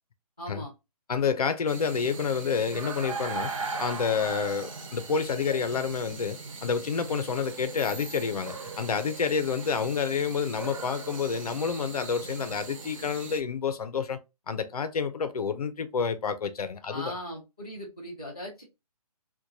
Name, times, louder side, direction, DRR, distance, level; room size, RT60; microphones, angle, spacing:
voice 1, 0.4-0.7 16.9-18.6, equal, 10° right, 0.3 m, -39 dB
voice 2, 1.1-3.5 3.8-14.2 14.5-17.1, left 6 dB, 65° left, 0.6 m, -29 dB
sound 1, 1.7-13.4, right 4 dB, 50° right, 1.1 m, -39 dB
4.4 x 2.2 x 2.6 m
hypercardioid pair, 170°, 20 cm